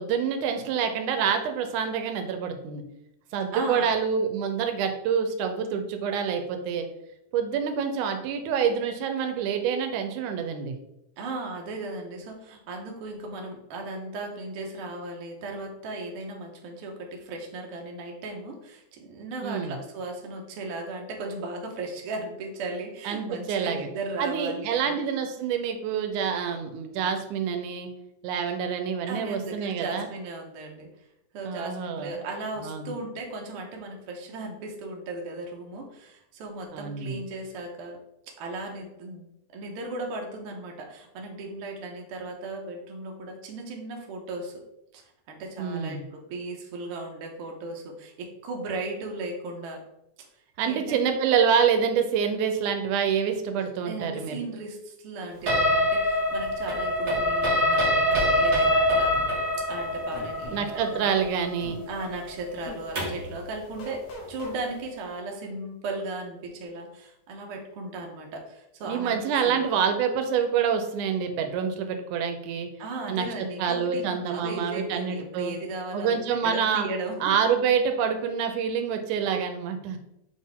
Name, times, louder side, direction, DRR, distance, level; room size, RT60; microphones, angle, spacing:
voice 1, 0.0-2.8 3.3-6.9 7.3-10.8 19.4-19.8 23.1-23.9 24.2-27.9 28.2-30.1 31.5-32.1 32.6-32.9 36.7-37.2 45.6-46.0 50.6-54.4 60.5-61.8 68.8-72.7 73.1-73.3 73.6-75.5 75.9-76.9 77.2-80.0, right 7 dB, 90° right, 6 dB, 2.1 m, -27 dB
voice 2, 3.5-3.9 11.2-25.0 29.1-30.9 31.3-38.0 38.4-44.5 44.9-45.0 45.3-49.8 50.2-50.3 50.6-51.0 53.8-59.1 59.7-61.1 61.9-64.0 64.3-69.6 72.8-77.2, right 2 dB, 60° right, 1 dB, 1.6 m, -36 dB
sound 1, 55.5-63.3, left 1 dB, 40° right, 1.5 m, -24 dB
sound 2, 57.1-57.6 59.1-59.3 60.1-60.6 61.6-61.8 62.6-62.8 63.8-64.6, left 1 dB, 75° left, 2.6 m, -41 dB
6.5 x 4.2 x 3.6 m, 0.82 s
omnidirectional pair, 3.6 m